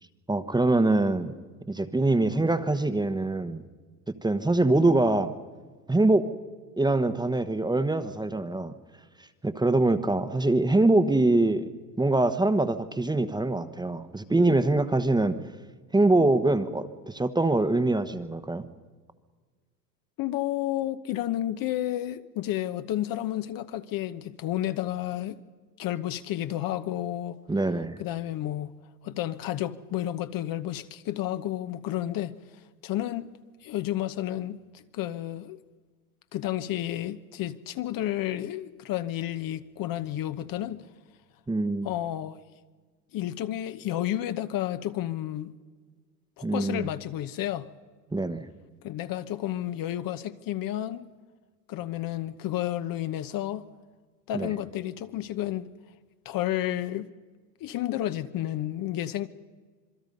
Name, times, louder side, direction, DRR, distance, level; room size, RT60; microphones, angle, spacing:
voice 1, 0.3-1.3 1.7-3.6 4.2-5.3 5.9-6.3 6.8-8.7 9.4-11.6 12.0-15.4 15.9-18.7 27.5-28.0 41.5-41.9 46.4-46.9 48.1-48.5 54.3-54.5, right 2 dB, 10° right, 1.2 m, -24 dB
voice 2, 20.2-25.4 25.8-27.4 28.0-28.7 29.0-32.3 32.8-33.3 33.6-34.6 34.9-35.6 36.3-40.9 41.8-42.4 43.1-45.5 46.4-47.7 48.8-51.1 51.7-53.6 54.3-55.7 56.2-57.1 57.6-59.3, left 13 dB, 40° left, 1.1 m, -31 dB
27.0 x 22.5 x 5.4 m
hypercardioid pair, 95°, 50 cm